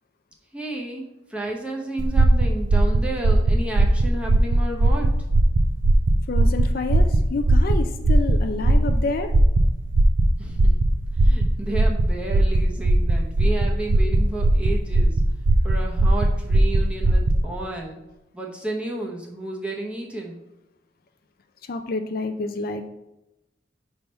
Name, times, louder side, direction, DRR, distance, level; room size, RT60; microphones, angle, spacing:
voice 1, 0.5-5.1 10.4-10.6 11.2-15.1 15.6-18.0 18.3-20.4, right 2 dB, 5° right, -1 dB, 0.8 m, -32 dB
sound 1, 2.0-17.4, right 1 dB, 85° right, 0.5 m, -19 dB
voice 2, 6.3-9.3 21.7-22.9, left 3 dB, 50° left, 7 dB, 0.4 m, -28 dB
5.6 x 3.4 x 5.3 m, 0.95 s
head